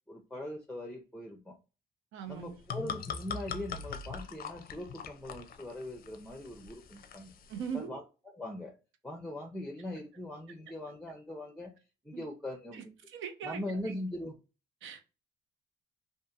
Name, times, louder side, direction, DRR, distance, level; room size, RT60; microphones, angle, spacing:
voice 1, 0.1-1.6 2.3-7.3 7.7-8.8 9.0-11.7 12.0-13.0 13.4-14.4, left 1 dB, 5° left, 0.6 m, -41 dB
voice 2, 2.1-2.6 7.5-8.0 12.1-12.2 12.7-13.6 13.8-13.9 14.8-15.0, right 7 dB, 80° right, 0.7 m, -40 dB
sound 1, 2.3-7.8, left 6 dB, 50° left, 0.5 m, -42 dB
2.7 x 2.6 x 2.3 m
cardioid pair, 90°, 20 cm